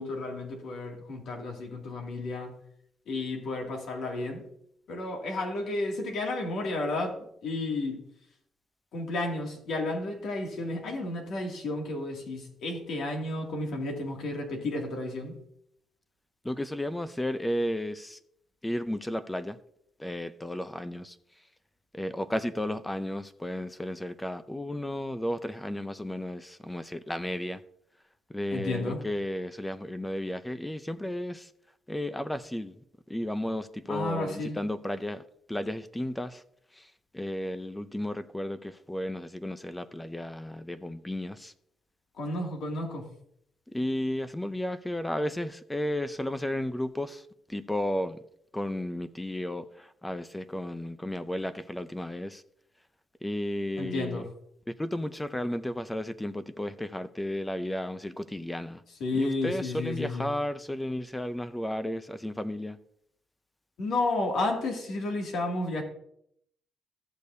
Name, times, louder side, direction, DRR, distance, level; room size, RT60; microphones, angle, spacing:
voice 1, 0.0-2.5 3.1-4.4 4.9-7.2 7.4-8.0 8.9-15.4 28.5-29.0 33.9-34.6 42.2-43.1 53.8-54.2 59.0-60.3 63.8-65.8, left 2 dB, 70° left, 1 dB, 2.3 m, -32 dB
voice 2, 16.4-18.2 18.6-19.6 20.0-21.2 21.9-27.6 28.3-31.5 31.9-32.7 33.1-35.2 35.5-36.4 36.8-36.9 37.1-41.5 43.7-47.2 47.5-48.2 48.5-52.4 53.2-54.2 54.8-58.8 59.1-62.8, left 1 dB, 10° left, 13 dB, 0.5 m, -33 dB
14.0 x 6.6 x 2.7 m, 0.72 s
cardioid pair, 90°, 0 cm